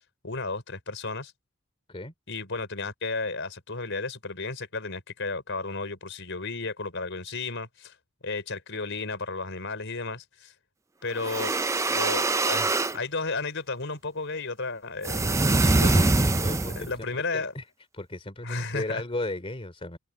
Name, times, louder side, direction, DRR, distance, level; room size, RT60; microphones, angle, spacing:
voice 1, 0.2-1.3 2.3-7.9 8.2-10.5 11.0-11.6 11.9-16.3 16.8-17.5 18.4-19.0, left 3 dB, 65° left, 5.4 m, -33 dB
sound 1, 11.2-13.0 15.0-16.9, right 2 dB, 15° right, 0.5 m, -23 dB
voice 2, 16.4-17.6 17.9-20.0, left 2 dB, 30° left, 3.2 m, -36 dB
open air
head